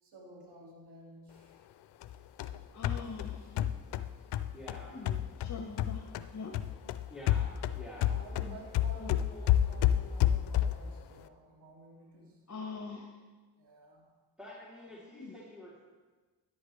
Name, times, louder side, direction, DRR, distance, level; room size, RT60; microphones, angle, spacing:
voice 1, 0.0-1.6 2.8-3.5 8.1-12.4 13.6-14.0 14.8-14.9, equal, 80° right, -2 dB, 2.7 m, -52 dB
sound 1, 2.0-6.3 6.5-10.9, left 11 dB, 85° left, 0.5 m, -30 dB
voice 2, 2.7-3.6 4.9-6.5 8.3-8.6 9.0-9.2 12.5-13.2 15.1-15.3, left 4 dB, 40° left, 2 dB, 1.3 m, -43 dB
voice 3, 4.5-5.0 7.1-8.1 14.4-15.8, left 1 dB, ahead, -7 dB, 2.9 m, -48 dB
13.5 x 10.5 x 3.3 m, 1.3 s
cardioid pair, 55°, 40 cm